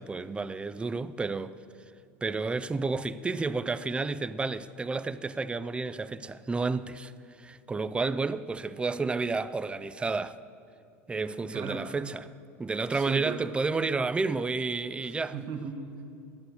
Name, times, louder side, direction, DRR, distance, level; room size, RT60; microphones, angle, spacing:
voice 1, 0.0-1.6 2.2-7.1 7.4-10.4 11.1-12.3 12.6-15.3, right 3 dB, 15° right, 0.4 m, -31 dB
voice 2, 11.5-11.9 12.9-13.4 15.3-16.0, right 6 dB, 60° right, 1.4 m, -36 dB
10.5 x 8.0 x 8.0 m
supercardioid pair, 100°, 8 cm